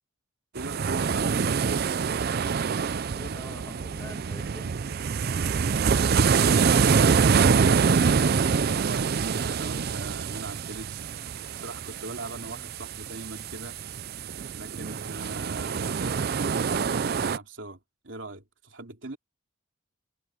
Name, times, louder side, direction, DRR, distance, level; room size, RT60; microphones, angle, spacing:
voice 1, 0.5-1.7 5.8-11.0 11.6-13.8 14.5-19.2, right 2 dB, 70° right, 2.9 m, -39 dB
sound 1, 0.6-17.4, right 5 dB, 50° right, 0.4 m, -25 dB
voice 2, 3.1-4.8 12.5-12.7, left 1 dB, 15° left, 1.4 m, -46 dB
head